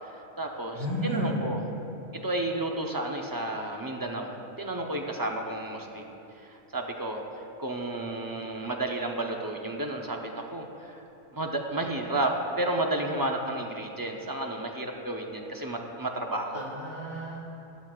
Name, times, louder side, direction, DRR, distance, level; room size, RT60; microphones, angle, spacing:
voice 1, 0.0-1.6 2.1-11.0 11.3-16.7, right 1 dB, 25° right, 2 dB, 0.5 m, -32 dB
voice 2, 0.7-1.4 16.5-17.4, equal, 50° right, -7 dB, 2.5 m, -32 dB
12.5 x 12.0 x 2.4 m, 2.9 s
omnidirectional pair, 1.3 m